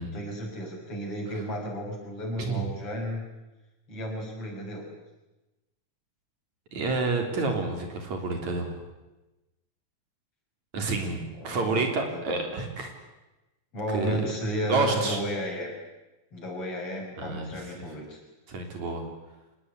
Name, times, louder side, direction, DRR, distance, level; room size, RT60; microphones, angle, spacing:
voice 1, 0.0-3.2 3.9-4.8 10.7-10.9 11.4-12.2 13.7-15.7 16.3-18.2, equal, 50° left, 0 dB, 7.5 m, -33 dB
voice 2, 6.7-8.8 10.7-12.9 13.9-14.3 14.7-15.2 17.2-17.7 18.5-19.1, right 3 dB, 70° right, 4 dB, 5.0 m, -29 dB
25.0 x 19.5 x 9.7 m, 1.0 s
omnidirectional pair, 3.3 m